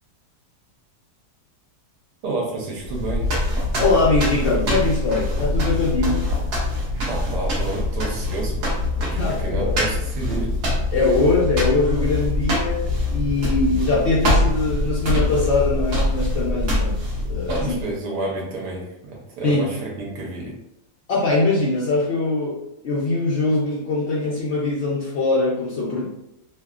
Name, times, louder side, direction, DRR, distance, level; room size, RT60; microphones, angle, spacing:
voice 1, 2.2-3.3 7.1-10.5 17.5-20.5, right 2 dB, 75° right, -2 dB, 1.2 m, -30 dB
sound 1, 2.8-17.9, left 1 dB, 55° right, 0.8 m, -24 dB
voice 2, 3.8-6.2 9.2-9.7 10.9-17.5 19.4-19.6 21.1-22.6 22.8-26.1, left 3 dB, 75° left, -7 dB, 0.6 m, -22 dB
3.0 x 2.1 x 2.3 m, 0.85 s
omnidirectional pair, 1.8 m